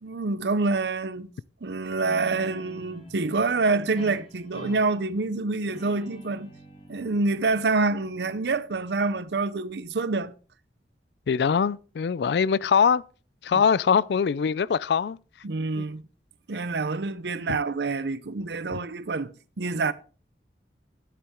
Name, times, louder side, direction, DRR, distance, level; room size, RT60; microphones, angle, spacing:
voice 1, 0.0-1.3 1.6-6.5 6.9-10.3 13.5-13.6 15.4-16.0 16.5-19.9, right 3 dB, 75° right, 0.6 m, -27 dB
Guitar, 2.0-9.2, equal, 35° left, 2.2 m, -46 dB
voice 2, 11.3-13.0 13.4-15.2 15.8-15.9 18.7-18.8, left 6 dB, 70° left, 0.4 m, -22 dB
9.9 x 8.4 x 3.6 m
head